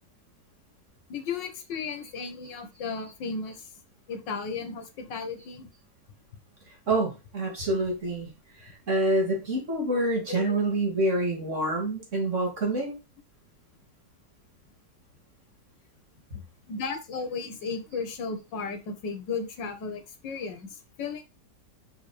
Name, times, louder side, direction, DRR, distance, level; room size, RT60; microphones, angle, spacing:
voice 1, 1.1-3.7 4.1-5.7 10.3-10.6 16.7-21.2, left 5 dB, 85° left, 1.9 m, -35 dB
voice 2, 6.9-8.3 8.6-12.9, right 1 dB, 40° right, 3.0 m, -27 dB
5.7 x 5.3 x 3.4 m
omnidirectional pair, 1.9 m